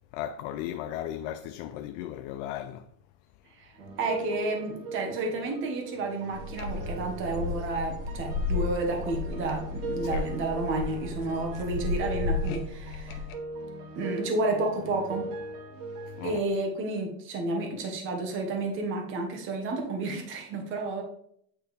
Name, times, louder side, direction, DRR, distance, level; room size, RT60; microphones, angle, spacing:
voice 1, 0.1-2.8 10.0-10.3 16.2-16.4, left 12 dB, 65° left, 0.5 m, -36 dB
sound 1, 3.7-16.3, right 2 dB, 55° right, 1.7 m, -40 dB
voice 2, 4.0-13.2 13.9-15.3 16.2-21.0, right 2 dB, 30° right, 1.3 m, -31 dB
sound 2, 6.3-13.3, left 4 dB, 85° left, 1.1 m, -33 dB
8.6 x 4.5 x 3.3 m
cardioid pair, 165°, 40 cm